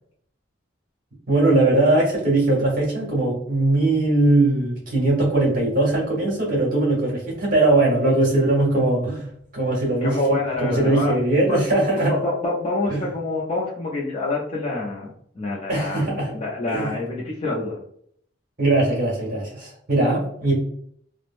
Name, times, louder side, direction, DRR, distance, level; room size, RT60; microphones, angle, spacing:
voice 1, 1.3-9.3 9.5-10.2 10.6-12.1 12.9-13.0 15.7-16.3 16.7-16.9 18.6-20.5, right 2 dB, 45° right, -4 dB, 1.3 m, -20 dB
voice 2, 10.0-11.2 11.5-11.6 12.1-17.8, left 2 dB, 30° left, -4 dB, 0.4 m, -26 dB
3.2 x 2.0 x 2.5 m, 0.65 s
head